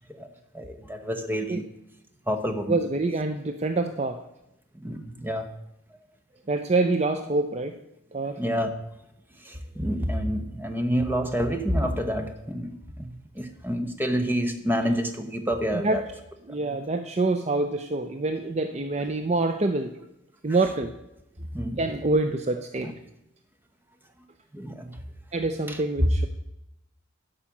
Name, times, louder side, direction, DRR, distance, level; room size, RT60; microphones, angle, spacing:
voice 1, 0.5-1.6 2.3-2.8 4.8-5.5 8.4-8.7 9.4-16.0 21.5-21.8 22.8-22.9 24.5-25.0 25.7-25.8, equal, 10° right, 6 dB, 0.8 m, -28 dB
voice 2, 2.7-4.2 6.5-7.8 8.1-8.4 15.7-16.0 16.5-19.9 20.4-20.9 21.8-22.9 25.3-26.3, right 2 dB, 30° right, 7 dB, 0.5 m, -26 dB
11.5 x 5.1 x 7.2 m, 0.85 s
head